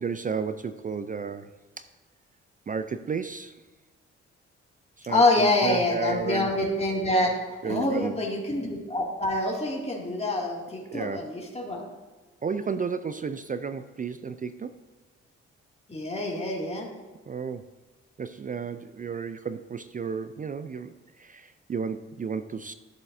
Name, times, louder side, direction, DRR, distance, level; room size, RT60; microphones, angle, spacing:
voice 1, 0.0-1.9 2.7-3.6 5.0-6.5 7.6-8.1 10.9-11.3 12.4-14.8 17.3-17.7 18.2-22.7, right 5 dB, 25° right, 12 dB, 0.4 m, -33 dB
voice 2, 5.1-11.8 15.9-16.9, left 2 dB, 20° left, -2 dB, 2.4 m, -26 dB
12.5 x 7.0 x 2.7 m, 1.3 s
hypercardioid pair, 45°, 32 cm